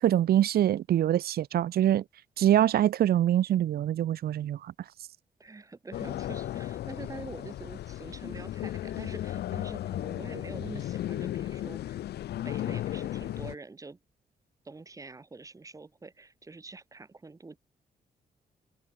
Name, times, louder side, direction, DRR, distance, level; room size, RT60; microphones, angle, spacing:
voice 1, 0.0-2.0 2.4-4.7, right 11 dB, 70° right, 0.7 m, -24 dB
voice 2, 5.4-12.0 12.4-14.0 14.6-17.6, right 3 dB, 20° right, 5.0 m, -45 dB
sound 1, 5.9-13.5, left 13 dB, 85° left, 0.6 m, -35 dB
wide cardioid pair, 170°, 16 cm